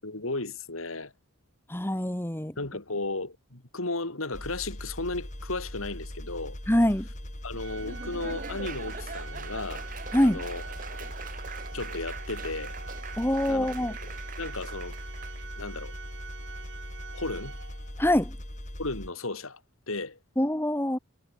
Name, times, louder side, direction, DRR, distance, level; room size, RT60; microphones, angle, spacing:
voice 1, 0.0-1.1 2.6-6.6 7.4-9.9 10.2-10.6 10.9-11.1 11.7-12.8 13.5-14.1 14.4-15.0 15.6-15.9 17.1-17.6 18.8-19.6 19.9-20.2, left 2 dB, 90° left, 3.4 m, -35 dB
voice 2, 1.7-2.5 6.7-7.1 10.1-10.4 13.2-13.9 18.0-18.4 20.4-21.0, left 1 dB, 10° left, 1.4 m, -24 dB
sound 1, 4.3-19.1, left 1 dB, 35° left, 2.8 m, -40 dB
Laughter / Applause, 7.6-15.4, right 5 dB, 40° right, 2.3 m, -43 dB
Organ, 7.6-18.1, right 6 dB, 60° right, 2.6 m, -46 dB
head